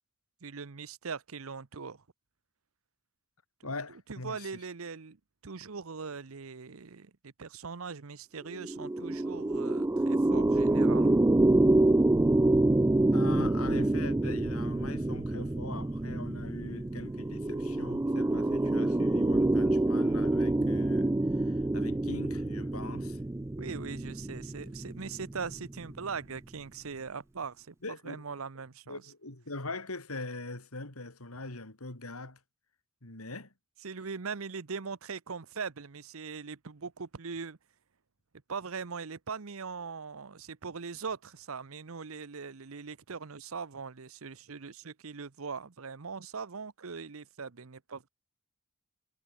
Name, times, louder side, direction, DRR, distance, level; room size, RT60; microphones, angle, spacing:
voice 1, 0.4-2.0 4.1-5.2 5.4-11.3 23.6-29.1 33.8-37.6 38.5-48.1, right 5 dB, 70° right, 0.9 m, -41 dB
voice 2, 3.6-4.5 13.1-23.2 27.8-28.2 28.9-32.4 33.0-33.5, left 2 dB, 85° left, 3.5 m, -42 dB
sound 1, 8.5-26.0, right 2 dB, 10° right, 0.3 m, -27 dB
head